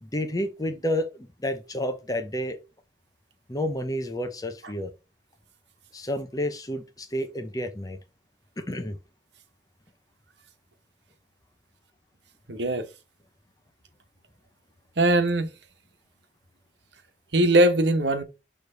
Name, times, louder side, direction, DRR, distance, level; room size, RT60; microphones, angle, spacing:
voice 1, 0.0-2.6 3.5-4.9 5.9-8.0 8.6-9.0, left 1 dB, 20° left, 0.7 m, -30 dB
voice 2, 12.5-12.9 15.0-15.5 17.3-18.2, right 1 dB, 80° right, 1.2 m, -20 dB
6.5 x 3.3 x 5.1 m
head